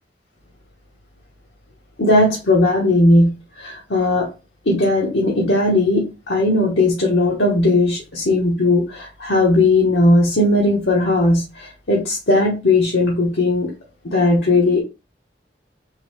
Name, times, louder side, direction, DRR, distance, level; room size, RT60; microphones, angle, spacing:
voice 1, 2.0-3.3 3.6-4.3 4.7-13.7 14.0-14.8, left 2 dB, 85° left, 1.1 m, -17 dB
3.9 x 2.7 x 4.5 m
head